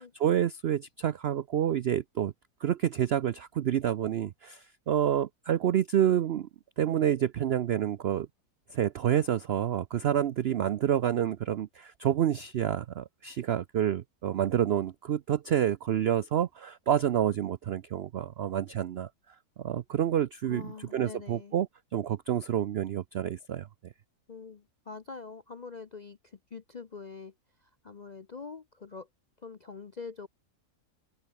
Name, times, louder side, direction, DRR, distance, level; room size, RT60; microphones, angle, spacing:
voice 1, 0.0-2.3 2.6-6.5 6.8-8.3 8.7-19.1 19.6-23.9, right 10 dB, 85° right, 0.5 m, -28 dB
voice 2, 20.5-21.5 24.3-27.3 27.6-29.1 29.4-30.3, left 5 dB, 55° left, 0.4 m, -44 dB
open air
omnidirectional pair, 1.7 m